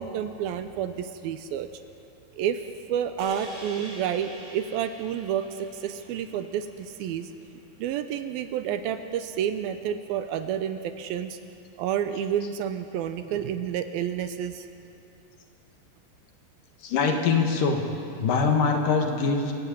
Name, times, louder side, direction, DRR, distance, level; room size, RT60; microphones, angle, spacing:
voice 1, 0.0-1.7 2.4-7.3 7.8-11.4 11.8-14.7, right 9 dB, 80° right, 9 dB, 2.5 m, -30 dB
sound 1, 3.2-7.6, right 1 dB, 35° right, 6.0 m, -45 dB
voice 2, 16.8-17.8 18.2-19.5, left 5 dB, 60° left, 3 dB, 3.2 m, -23 dB
27.0 x 14.0 x 8.9 m, 2.7 s
omnidirectional pair, 4.6 m